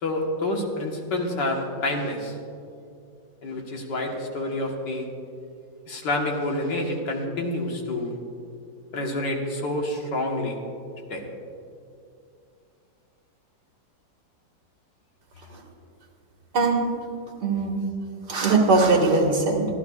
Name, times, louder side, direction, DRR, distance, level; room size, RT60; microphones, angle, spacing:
voice 1, 0.0-2.4 3.4-5.1 5.9-8.2 8.9-10.6 11.1-11.2, left 1 dB, 70° left, 1 dB, 2.1 m, -28 dB
voice 2, 16.5-16.9 17.4-17.8 18.3-19.7, right 3 dB, 65° right, 0 dB, 2.3 m, -20 dB
24.0 x 13.5 x 2.4 m, 2.5 s
omnidirectional pair, 2.0 m